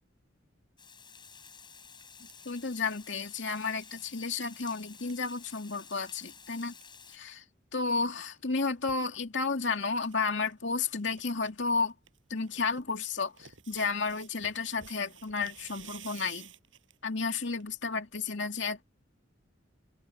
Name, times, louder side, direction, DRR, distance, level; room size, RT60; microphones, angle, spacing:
Water, 0.8-7.2, left 6 dB, 25° left, 6.6 m, -52 dB
sound 1, 1.2-1.4 1.8-6.1 6.4-6.5 6.6-6.9 8.2-9.1 9.7-10.2 10.4-10.5 10.9-11.5 11.9-17.1 17.6-17.7, right 9 dB, 90° right, 7.8 m, -54 dB
voice 1, 2.5-6.7 7.1-7.4 7.7-11.9 12.3-16.5 17.0-18.8, left 4 dB, 70° left, 2.6 m, -32 dB
head